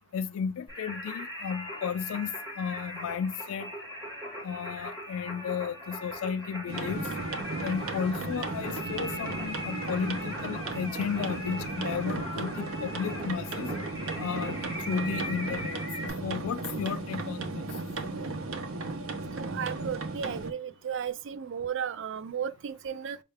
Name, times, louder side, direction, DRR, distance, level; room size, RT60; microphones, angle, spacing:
voice 1, 0.1-3.7 4.4-7.1 7.6-13.7 14.2-17.6, left 7 dB, 85° left, 0.3 m, -34 dB
Singing, 0.7-16.1, equal, 10° right, 2.0 m, -40 dB
sound 1, 6.7-20.5, right 2 dB, 80° right, 0.7 m, -35 dB
voice 2, 19.3-23.2, right 7 dB, 60° right, 0.3 m, -34 dB
5.4 x 2.3 x 3.4 m
head